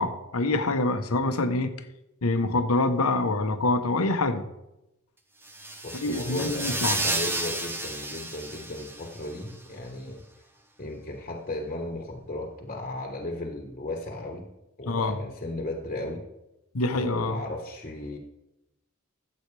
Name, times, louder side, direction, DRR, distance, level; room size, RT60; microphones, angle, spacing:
voice 1, 0.0-1.7 2.2-4.4 5.9-7.0 14.9-15.2 16.7-17.4, left 2 dB, 80° left, 7 dB, 1.0 m, -25 dB
sound 1, 5.4-9.3, right 2 dB, 10° right, 0.8 m, -32 dB
voice 2, 5.8-10.2 10.8-14.5 14.8-16.2 16.9-18.2, left 2 dB, 35° left, 1 dB, 1.3 m, -35 dB
14.5 x 8.0 x 3.4 m, 0.90 s
head